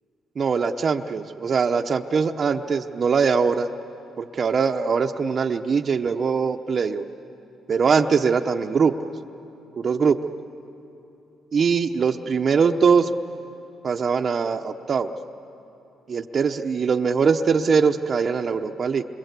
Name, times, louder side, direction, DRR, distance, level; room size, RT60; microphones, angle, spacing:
voice 1, 0.4-3.7 4.2-7.0 7.7-8.9 9.8-10.2 11.5-13.1 13.8-15.1 16.1-19.0, right 5 dB, 45° right, 6 dB, 0.9 m, -22 dB
27.0 x 26.0 x 8.3 m, 2.8 s
cardioid pair, 90°, 0 cm